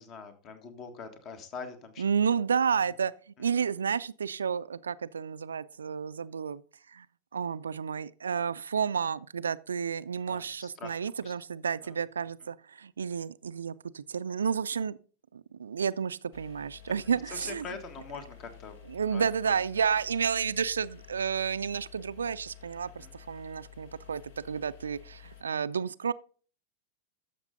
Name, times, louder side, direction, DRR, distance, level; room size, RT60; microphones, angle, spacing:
voice 1, 0.0-2.0 10.2-11.3 11.8-12.0 16.8-18.8 19.1-19.5 23.0-23.1, left 5 dB, 35° left, 1.6 m, -44 dB
voice 2, 2.0-3.1 3.4-6.6 6.9-7.1 7.3-15.0 15.3-17.6 18.9-24.2 24.5-26.1, right 6 dB, 70° right, 0.4 m, -31 dB
sound 1, 16.3-25.4, left 10 dB, 55° left, 1.4 m, -52 dB
13.0 x 6.6 x 3.8 m
figure-of-eight pair, 90°, 0 cm